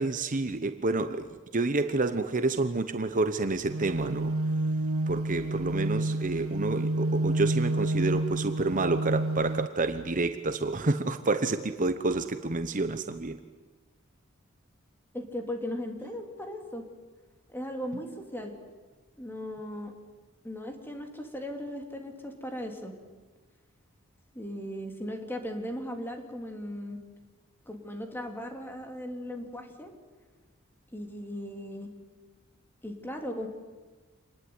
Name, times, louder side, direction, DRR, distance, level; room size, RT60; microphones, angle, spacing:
voice 1, 0.0-4.3 5.1-13.4, right 3 dB, 40° right, 9 dB, 1.0 m, -29 dB
sound 1, 3.7-9.7, right 2 dB, 85° right, 0.9 m, -29 dB
voice 2, 15.1-16.8 17.5-18.5 19.2-19.9 20.4-22.9 24.3-27.0 27.7-29.9 30.9-31.9 32.8-33.5, equal, 10° left, 3 dB, 3.1 m, -37 dB
27.0 x 20.5 x 9.7 m, 1.3 s
head